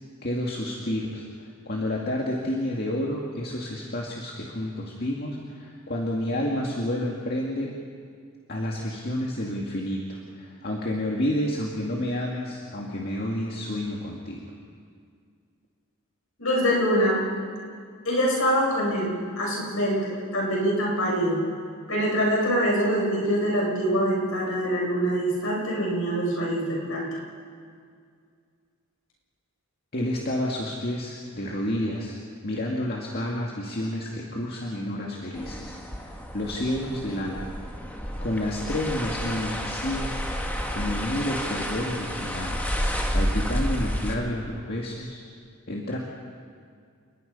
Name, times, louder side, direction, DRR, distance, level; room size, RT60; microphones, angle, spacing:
voice 1, 0.2-1.2 1.7-7.7 8.5-14.4 29.9-32.2 32.4-37.5 38.2-40.2 40.7-42.7 43.1-45.2 45.7-46.0, left 1 dB, 45° left, -2 dB, 2.2 m, -30 dB
voice 2, 16.4-17.2 18.0-21.4 21.9-27.0, equal, 65° left, -3 dB, 7.5 m, -24 dB
sound 1, 35.3-44.2, equal, 10° left, 1.8 m, -30 dB
29.5 x 20.5 x 5.5 m, 2.2 s
head